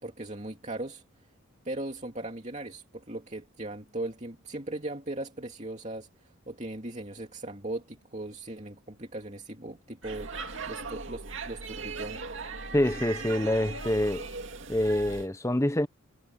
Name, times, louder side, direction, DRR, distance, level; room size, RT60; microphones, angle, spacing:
voice 1, 0.0-1.3 1.6-12.2, right 2 dB, 30° right, 2.7 m, -38 dB
Speech / Shout / Subway metro underground, 10.0-15.3, right 4 dB, 55° right, 2.6 m, -39 dB
voice 2, 12.7-14.3 14.7-15.9, left 1 dB, 15° left, 0.8 m, -26 dB
head